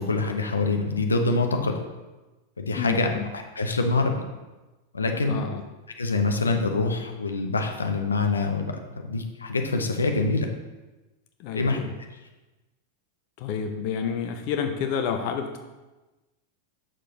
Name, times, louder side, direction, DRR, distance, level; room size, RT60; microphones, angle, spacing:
voice 1, 0.0-1.8 2.6-3.1 3.6-4.2 4.9-5.3 6.0-10.5 11.5-11.8, left 3 dB, 75° left, 4 dB, 0.8 m, -25 dB
voice 2, 2.8-3.3 5.2-5.6 11.4-11.9 13.4-15.6, left 7 dB, 45° left, 5 dB, 0.7 m, -29 dB
7.8 x 6.6 x 3.9 m, 1.1 s
figure-of-eight pair, 90°, 0 cm